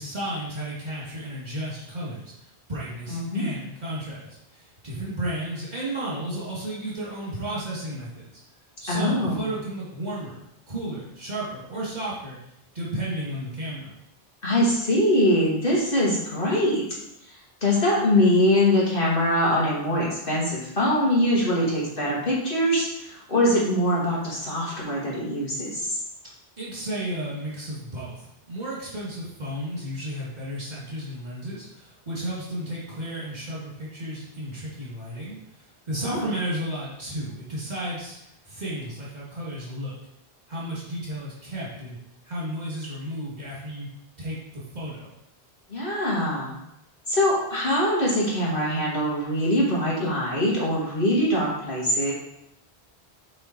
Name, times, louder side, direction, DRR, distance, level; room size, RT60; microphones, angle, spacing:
voice 1, 0.0-2.3 2.7-8.3 8.8-10.3 10.7-12.4 12.7-13.9 26.6-35.4 35.9-38.2 38.4-40.0 40.5-42.0 42.2-43.9 44.2-45.1, right 1 dB, 40° right, -7 dB, 2.6 m, -33 dB
voice 2, 3.1-3.4 8.9-9.5 14.4-16.8 17.6-26.0 36.0-36.3 45.7-46.6 47.1-52.1, left 1 dB, 55° left, -5 dB, 2.2 m, -23 dB
7.7 x 4.4 x 4.4 m, 0.81 s
omnidirectional pair, 1.1 m